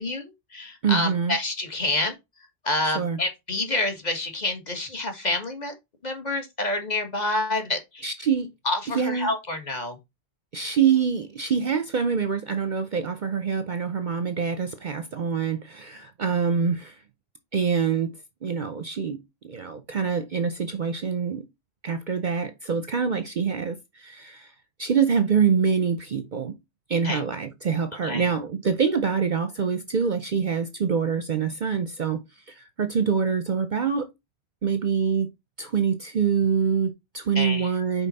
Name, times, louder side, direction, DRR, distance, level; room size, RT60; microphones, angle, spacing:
voice 1, 0.0-2.1 2.6-5.7 6.0-8.0 8.6-10.0 27.0-27.2 28.0-28.3 37.3-37.7, left 2 dB, 40° left, 1.4 m, -28 dB
voice 2, 0.8-1.4 2.8-3.2 8.0-8.5 8.9-9.3 10.5-17.0 17.5-18.1 18.4-19.2 19.4-21.4 21.8-24.5 24.8-26.5 26.9-32.2 32.5-34.1 34.6-35.3 35.6-38.1, right 6 dB, 50° right, 0.7 m, -25 dB
5.4 x 4.5 x 4.0 m
omnidirectional pair, 1.2 m